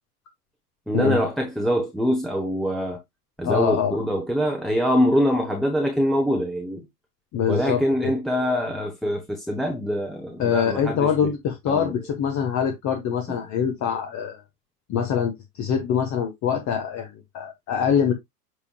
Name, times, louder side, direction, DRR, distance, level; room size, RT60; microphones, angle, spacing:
voice 1, 0.9-3.0 3.4-6.8 7.5-11.3 11.7-12.0, equal, ahead, 1.1 m, -24 dB
voice 2, 3.4-4.0 7.3-8.1 10.4-14.4 14.9-18.1, left 7 dB, 35° left, 1.4 m, -24 dB
8.3 x 5.4 x 2.4 m
hypercardioid pair, 100°, 49 cm